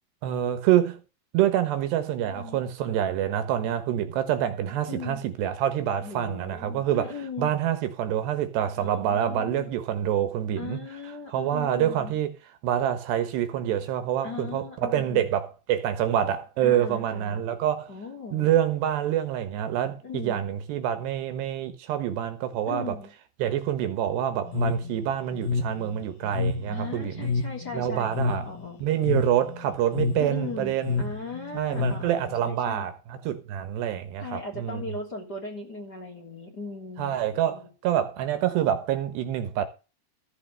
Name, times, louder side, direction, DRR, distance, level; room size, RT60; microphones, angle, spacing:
voice 1, 0.2-1.0 1.3-10.8 11.3-12.3 12.6-17.9 18.3-23.0 23.4-27.3 27.7-28.5 28.8-31.0 31.5-34.8 37.0-39.7, right 10 dB, 75° right, 3.3 m, -26 dB
voice 2, 2.2-2.6 4.9-5.2 6.0-7.5 8.8-9.7 10.6-12.1 14.2-15.2 16.6-17.4 17.9-18.5 20.0-20.4 22.7-23.1 26.7-28.8 30.2-32.8 34.2-37.2 37.5-37.6, left 4 dB, 25° left, 3.3 m, -38 dB
sound 1, 24.5-32.4, left 4 dB, 60° left, 3.0 m, -29 dB
14.5 x 5.7 x 6.7 m
omnidirectional pair, 5.1 m